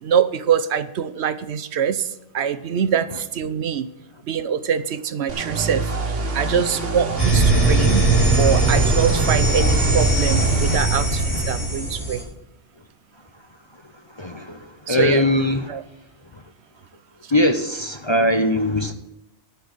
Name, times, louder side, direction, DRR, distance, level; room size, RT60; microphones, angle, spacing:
voice 1, 0.0-2.1 2.3-3.9 4.3-8.0 8.4-12.2 14.9-15.2 15.7-15.8, right 8 dB, 65° right, 13 dB, 0.9 m, -23 dB
sound 1, 5.3-10.8, right 2 dB, 85° right, 1.8 m, -26 dB
sound 2, 7.2-12.2, right 2 dB, 10° left, 5.7 m, -19 dB
voice 2, 14.1-15.8 16.3-16.4 17.3-18.9, left 1 dB, 30° left, 5 dB, 0.6 m, -21 dB
12.0 x 5.8 x 8.8 m, 0.84 s
omnidirectional pair, 1.2 m